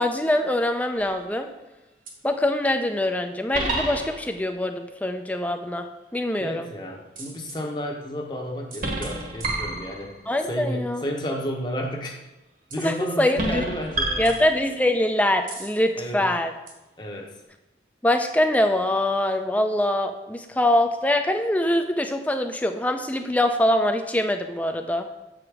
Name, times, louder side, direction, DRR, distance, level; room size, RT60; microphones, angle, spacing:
voice 1, 0.0-1.5 2.2-5.9 6.1-6.7 10.3-11.0 12.8-13.6 14.2-16.5 18.0-25.1, left 1 dB, 10° left, 6 dB, 0.4 m, -23 dB
sound 1, 0.9-1.4 2.1-2.2 3.5-4.4 7.1-7.6 8.7-10.3 12.7-13.0 13.4-14.9 15.5-15.8 16.7-16.8, right 2 dB, 50° right, 1.3 m, -30 dB
voice 2, 6.4-10.2 10.5-12.2 12.7-14.3 16.0-16.2 17.0-17.4, equal, 25° left, 1 dB, 0.9 m, -32 dB
7.4 x 5.0 x 4.7 m, 1.0 s
head